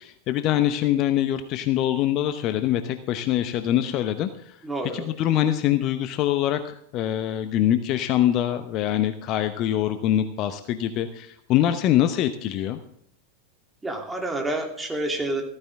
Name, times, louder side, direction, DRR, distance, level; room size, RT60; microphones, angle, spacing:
voice 1, 0.0-4.6 4.9-12.8, left 12 dB, 35° left, 10 dB, 0.9 m, -24 dB
voice 2, 4.6-5.1 13.8-15.4, right 2 dB, 10° right, 1 dB, 3.0 m, -28 dB
15.0 x 14.0 x 3.6 m, 0.74 s
figure-of-eight pair, 90°, 0 cm